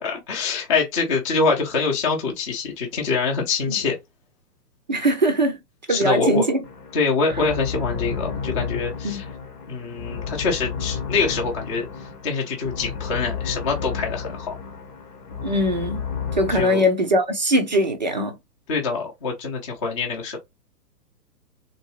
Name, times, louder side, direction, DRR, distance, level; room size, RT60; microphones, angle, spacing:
voice 1, 0.0-4.0 5.9-6.4 6.9-9.2 9.7-11.9 12.2-14.5 16.5-16.9 18.7-20.4, left 4 dB, 20° left, 0.6 m, -24 dB
voice 2, 4.9-5.6 5.9-6.6 9.0-9.2 15.4-16.0 16.4-18.3, equal, 30° right, 0.4 m, -21 dB
sound 1, 6.6-16.6, left 6 dB, 70° left, 1.1 m, -32 dB
3.5 x 2.6 x 3.0 m
figure-of-eight pair, 120°, 49 cm